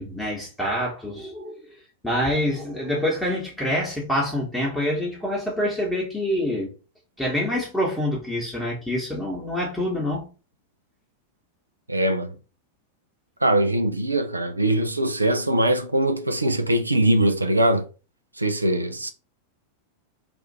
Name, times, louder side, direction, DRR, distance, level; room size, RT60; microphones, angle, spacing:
voice 1, 0.0-6.7 7.2-10.3, left 1 dB, 5° left, 1.0 m, -26 dB
voice 2, 11.9-12.4 13.4-17.9 18.4-19.1, right 1 dB, 80° right, 0.4 m, -22 dB
2.5 x 2.4 x 4.0 m
figure-of-eight pair, 90°, 0 cm